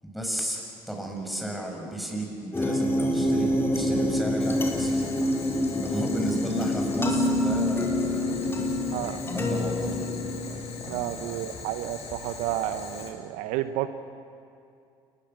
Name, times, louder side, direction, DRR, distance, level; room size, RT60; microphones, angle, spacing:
voice 1, 0.0-5.1 5.8-8.4 9.3-10.1 10.9-11.4, right 1 dB, ahead, 1 dB, 7.6 m, -33 dB
sound 1, 2.5-10.9, left 1 dB, 20° left, 4.7 m, -26 dB
Boiling, 4.4-13.1, left 5 dB, 55° left, 5.4 m, -42 dB
voice 2, 10.9-13.9, right 13 dB, 75° right, 10 dB, 0.9 m, -31 dB
28.5 x 20.0 x 7.5 m, 2.5 s
hypercardioid pair, 65°, 13 cm